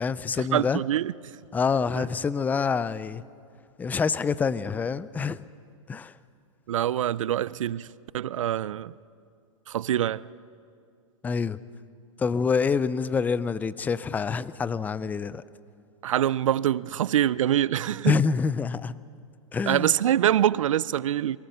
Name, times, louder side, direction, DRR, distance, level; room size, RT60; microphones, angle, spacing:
voice 1, 0.0-0.8 1.5-3.2 3.8-5.4 5.9-6.1 11.2-11.6 12.2-15.4 18.0-19.0 19.5-19.9, left 5 dB, 10° left, 0.4 m, -26 dB
voice 2, 0.5-1.3 2.0-2.1 6.7-7.9 8.1-8.9 9.7-10.3 16.0-18.2 19.6-21.4, right 11 dB, 85° right, 0.5 m, -25 dB
23.0 x 17.0 x 6.7 m
hypercardioid pair, 135°, 16 cm